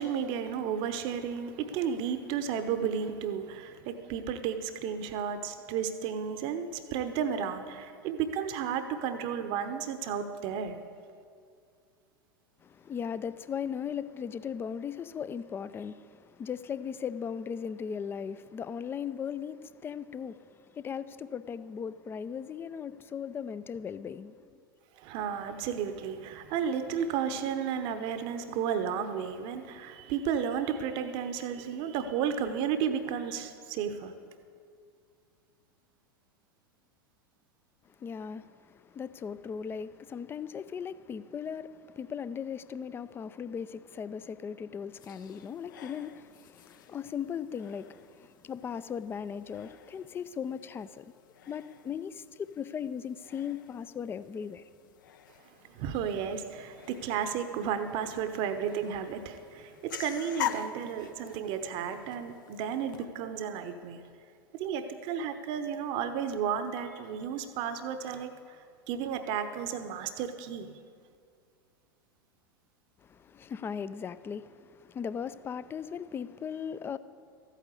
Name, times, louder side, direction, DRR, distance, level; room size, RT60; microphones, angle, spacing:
voice 1, 0.0-10.8 25.0-34.1 55.7-64.0 64.5-68.6 68.9-70.7, right 7 dB, 45° right, 0.9 m, -33 dB
voice 2, 12.6-24.6 37.9-51.1 51.5-54.7 73.0-77.0, left 7 dB, 20° left, 0.4 m, -38 dB
sound 1, 44.9-63.0, left 9 dB, 60° left, 0.7 m, -45 dB
14.0 x 9.1 x 8.3 m
figure-of-eight pair, 85°, 12 cm